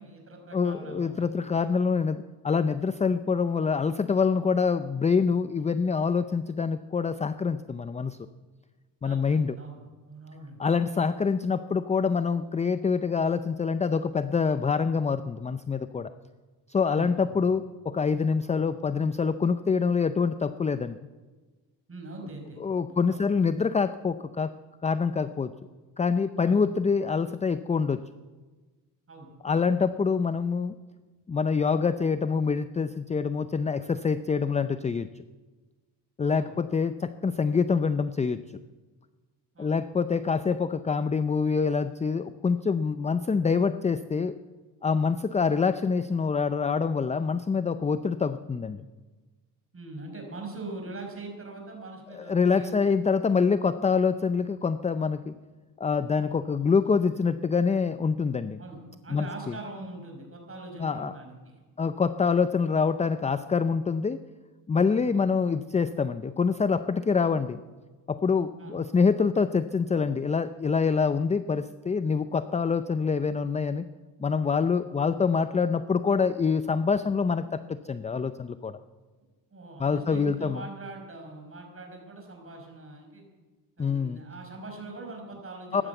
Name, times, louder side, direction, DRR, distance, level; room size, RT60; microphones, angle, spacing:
voice 1, 0.0-1.3 9.0-10.6 16.8-17.4 18.5-18.6 21.9-23.2 26.4-26.6 29.1-29.3 36.3-36.6 39.5-39.8 49.7-52.7 55.3-55.4 56.3-56.4 58.6-61.6 65.0-65.1 68.6-68.9 79.5-83.2 83.8-85.9, right 2 dB, 30° right, 2 dB, 5.3 m, -42 dB
voice 2, 0.5-8.2 9.0-9.5 10.6-16.1 16.7-21.0 22.6-24.5 24.8-25.5 26.0-28.0 29.4-30.7 31.3-35.1 36.2-38.4 39.6-44.3 44.8-48.8 52.1-55.3 55.8-58.6 59.1-59.5 60.8-61.1 61.8-64.2 64.7-67.6 68.1-73.8 74.2-78.8 79.8-80.6 83.8-84.2 85.7-85.8, left 5 dB, 15° left, 12 dB, 0.4 m, -26 dB
15.0 x 12.0 x 8.1 m, 1.3 s
cardioid pair, 105°, 45 cm